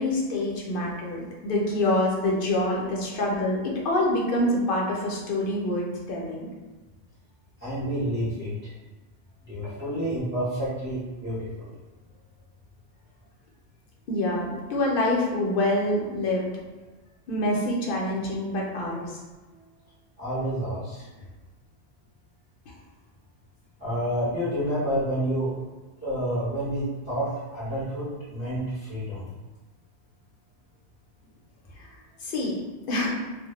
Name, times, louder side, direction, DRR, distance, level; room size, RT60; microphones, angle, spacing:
voice 1, 0.0-6.5 14.1-16.5 17.3-19.1 32.2-32.6 32.9-33.2, left 1 dB, 60° left, -3 dB, 0.7 m, -26 dB
voice 2, 7.6-8.5 9.5-11.7 20.2-21.0 23.8-25.6 26.0-29.3, equal, 15° right, -12 dB, 0.4 m, -29 dB
2.1 x 2.0 x 2.9 m, 1.3 s
omnidirectional pair, 1.1 m